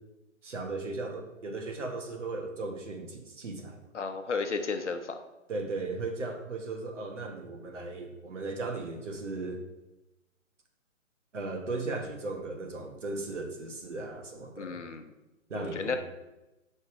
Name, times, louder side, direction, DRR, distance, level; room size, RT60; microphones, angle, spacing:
voice 1, 0.4-3.8 5.5-9.6 11.3-14.8 15.5-16.0, right 3 dB, 60° right, 3 dB, 1.4 m, -36 dB
voice 2, 3.9-5.2 14.6-15.0 15.5-16.0, left 4 dB, 60° left, 7 dB, 0.9 m, -33 dB
6.5 x 5.4 x 4.9 m, 1.0 s
hypercardioid pair, 175°, 41 cm